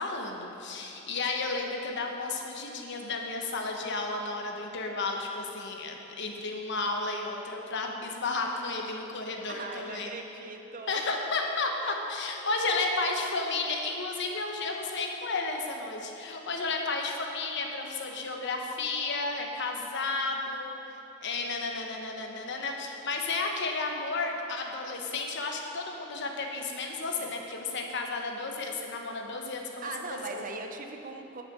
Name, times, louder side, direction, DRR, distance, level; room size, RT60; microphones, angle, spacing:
voice 1, 0.0-10.2 10.9-20.7 21.2-30.5, left 3 dB, 60° left, 2 dB, 1.0 m, -32 dB
voice 2, 9.5-11.2 11.8-12.0 12.4-13.2 27.2-27.3 29.8-31.4, right 4 dB, 40° right, 4 dB, 0.8 m, -41 dB
8.4 x 6.6 x 6.6 m, 3.0 s
head